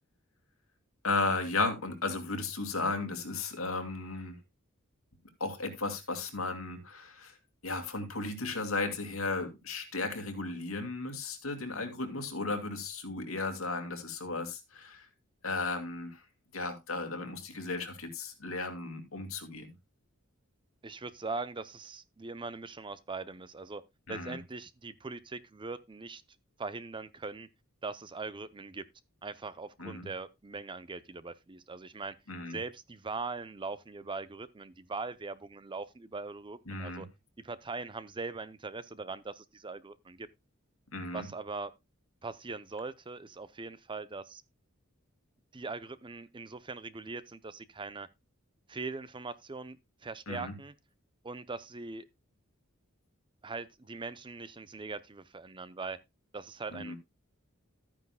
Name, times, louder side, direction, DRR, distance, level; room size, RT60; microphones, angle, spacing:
voice 1, 1.0-4.4 5.4-7.3 7.6-15.1 15.4-16.2 16.5-19.7 24.1-24.4 29.8-30.1 32.3-32.6 36.7-37.1 40.9-41.3 50.3-50.6 56.7-57.0, left 3 dB, 75° left, 2.4 m, -35 dB
voice 2, 20.8-23.8 24.1-26.2 26.6-27.5 27.8-28.8 29.2-32.1 32.5-37.1 37.4-40.3 41.1-41.7 42.2-44.4 45.5-48.1 48.7-49.8 50.0-50.7 51.2-52.1 53.4-56.0 56.3-56.9, right 3 dB, 25° right, 0.6 m, -41 dB
13.5 x 9.6 x 2.2 m
head